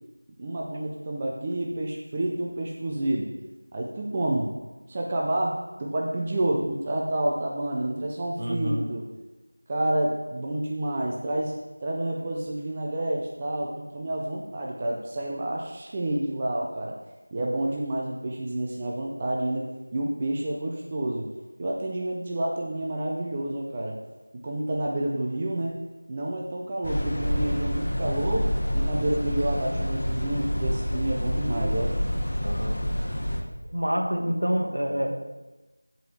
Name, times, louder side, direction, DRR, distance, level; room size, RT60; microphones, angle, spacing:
voice 1, 0.4-3.3 3.7-4.5 4.9-9.1 9.7-17.0 17.3-21.3 21.6-24.0 24.4-25.8 26.1-32.3, right 1 dB, 15° right, -1 dB, 0.5 m, -29 dB
voice 2, 8.4-8.9 32.4-32.8 33.7-35.1, equal, 75° right, 1 dB, 2.0 m, -27 dB
sound 1, 26.8-33.4, equal, 35° left, 1.1 m, -27 dB
13.0 x 4.8 x 3.4 m, 1.1 s
figure-of-eight pair, 175°, 0 cm